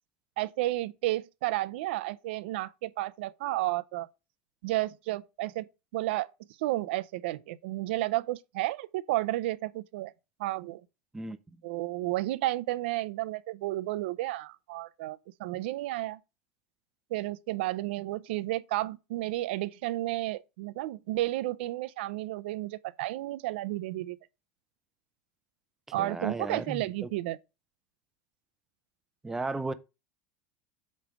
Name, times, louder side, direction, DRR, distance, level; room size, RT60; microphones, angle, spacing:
voice 1, 0.4-4.1 4.6-5.7 5.9-6.3 6.6-10.1 10.4-10.8 11.6-16.2 17.1-24.2 25.9-27.4, right 17 dB, 70° right, 0.5 m, -32 dB
voice 2, 26.0-27.1 29.2-29.7, right 3 dB, 5° right, 0.4 m, -35 dB
8.4 x 3.2 x 6.0 m
supercardioid pair, 160°, 6 cm